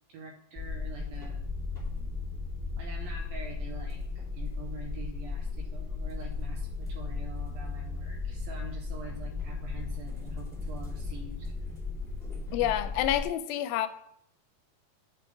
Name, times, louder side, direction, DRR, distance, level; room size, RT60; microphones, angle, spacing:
voice 1, 0.1-1.5 2.8-4.0 4.3-11.8, right 3 dB, 75° right, 0 dB, 2.5 m, -45 dB
sound 1, 0.5-13.3, left 4 dB, ahead, 1.7 m, -36 dB
voice 2, 12.5-13.9, left 12 dB, 85° left, 11 dB, 2.4 m, -28 dB
9.4 x 3.9 x 5.6 m, 0.72 s
omnidirectional pair, 4.2 m